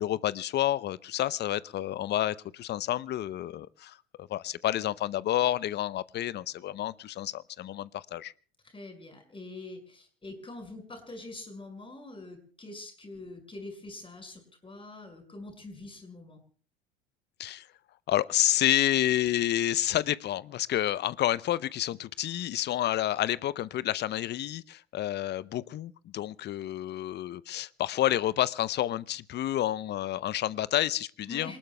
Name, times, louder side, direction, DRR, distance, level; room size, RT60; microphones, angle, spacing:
voice 1, 0.0-8.3 17.4-17.7 18.1-31.6, left 13 dB, 30° left, 19 dB, 0.7 m, -29 dB
voice 2, 8.6-16.4 31.3-31.6, left 2 dB, 15° left, 6 dB, 5.6 m, -44 dB
27.5 x 19.5 x 2.3 m, 0.42 s
figure-of-eight pair, 75°, 32 cm